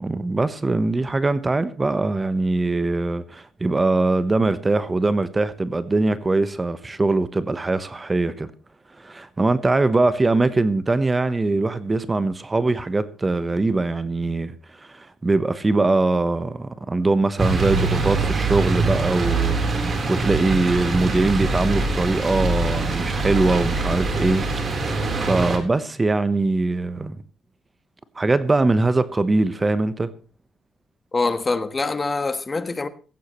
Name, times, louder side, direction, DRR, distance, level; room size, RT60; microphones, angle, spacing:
voice 1, 0.0-8.5 9.0-24.5 24.8-27.2 28.2-30.1, right 2 dB, 20° right, 1.0 m, -22 dB
sound 1, 17.4-25.6, right 3 dB, 45° right, 3.8 m, -23 dB
voice 2, 31.1-32.9, left 3 dB, 25° left, 1.3 m, -24 dB
16.0 x 15.0 x 3.1 m
cardioid pair, 90°, 0 cm